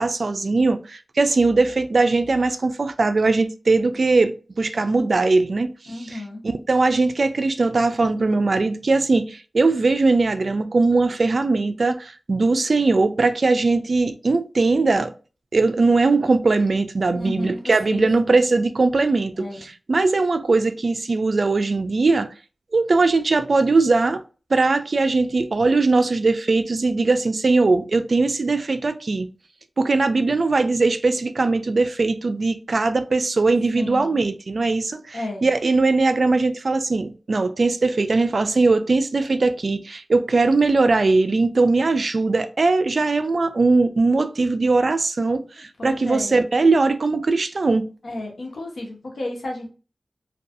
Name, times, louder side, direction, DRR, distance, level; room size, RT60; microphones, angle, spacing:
voice 1, 0.0-15.1 15.5-22.3 22.7-24.2 24.5-29.3 29.8-47.8, right 3 dB, 65° right, 0.3 m, -20 dB
voice 2, 5.9-6.4 17.1-18.4 19.4-19.6 33.8-34.2 35.1-35.5 45.8-46.4 48.0-49.7, left 1 dB, 90° left, 0.8 m, -32 dB
2.6 x 2.2 x 2.4 m
wide cardioid pair, 60°, 0 cm